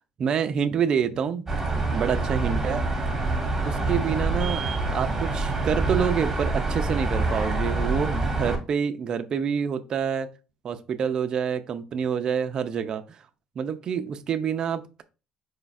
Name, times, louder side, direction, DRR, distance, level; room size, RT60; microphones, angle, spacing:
voice 1, 0.2-2.9 3.6-10.3 10.6-13.0 13.6-15.0, right 7 dB, 35° right, 8 dB, 0.4 m, -27 dB
sound 1, 1.5-8.6, right 3 dB, 10° right, 1.2 m, -26 dB
4.9 x 2.4 x 3.9 m, 0.32 s
cardioid pair, 170°, 2 cm